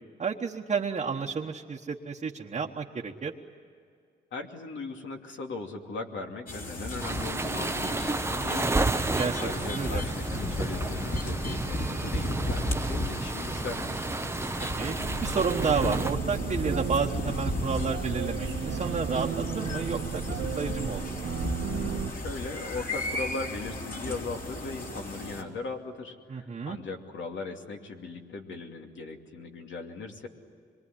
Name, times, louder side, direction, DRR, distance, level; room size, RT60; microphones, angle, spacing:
voice 1, 0.2-3.3 9.1-10.0 14.8-21.1 26.3-26.8, right 5 dB, 40° right, -1 dB, 1.3 m, -31 dB
voice 2, 4.3-9.1 9.4-14.1 21.7-30.3, left 3 dB, 80° left, 2 dB, 2.7 m, -38 dB
sound 1, 6.5-25.4, left 1 dB, 50° left, 3.7 m, -34 dB
sound 2, 7.0-16.1, right 2 dB, 15° right, 0.8 m, -32 dB
sound 3, 15.0-22.1, right 7 dB, 80° right, 1.4 m, -34 dB
25.5 x 23.0 x 9.9 m, 2.2 s
cardioid pair, 120°, 19 cm